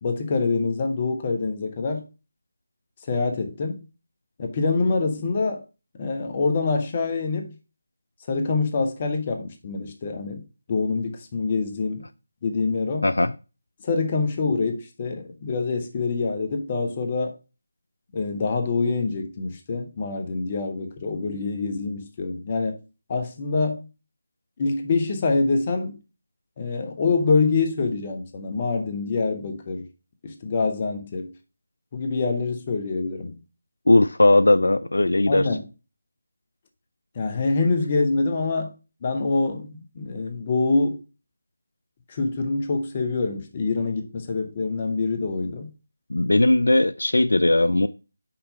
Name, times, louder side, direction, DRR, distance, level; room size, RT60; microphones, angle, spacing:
voice 1, 0.0-2.0 3.0-3.8 4.4-5.6 6.0-7.5 8.3-10.4 10.7-12.0 12.4-13.1 13.8-17.3 18.1-22.8 23.1-23.9 24.6-26.0 26.6-29.9 30.2-31.3 31.9-33.4 35.3-35.6 37.1-38.7 39.0-41.0 42.1-45.7, left 3 dB, 30° left, 1.1 m, -25 dB
voice 2, 13.0-13.3 33.9-35.5 46.1-47.9, left 2 dB, 70° left, 0.3 m, -18 dB
5.8 x 4.2 x 5.2 m
figure-of-eight pair, 155°, 0 cm